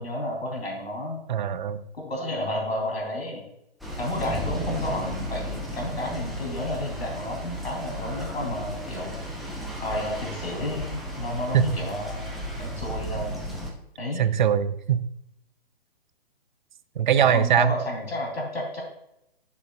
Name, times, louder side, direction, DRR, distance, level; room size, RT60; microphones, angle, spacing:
voice 1, 0.0-1.2 1.9-3.4 4.0-9.2 9.8-13.4 14.0-14.3 17.2-18.8, left 1 dB, 80° left, 0 dB, 3.1 m, -31 dB
voice 2, 1.3-1.8 11.5-11.7 14.2-15.0 17.0-17.7, right 9 dB, 50° right, 14 dB, 0.5 m, -21 dB
sound 1, 3.8-13.7, equal, ahead, 0.8 m, -34 dB
10.0 x 7.0 x 2.3 m, 0.81 s
figure-of-eight pair, 125°, 31 cm